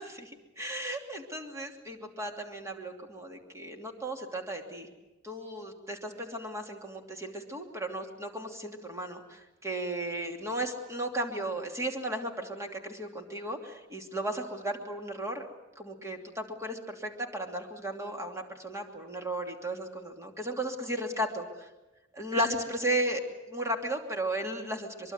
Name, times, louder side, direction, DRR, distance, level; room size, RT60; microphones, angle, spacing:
voice 1, 0.0-4.9 5.2-15.5 15.8-21.4 22.2-23.2 23.5-25.1, right 1 dB, 15° right, 3 dB, 2.8 m, -35 dB
23.5 x 23.5 x 8.1 m, 1.1 s
head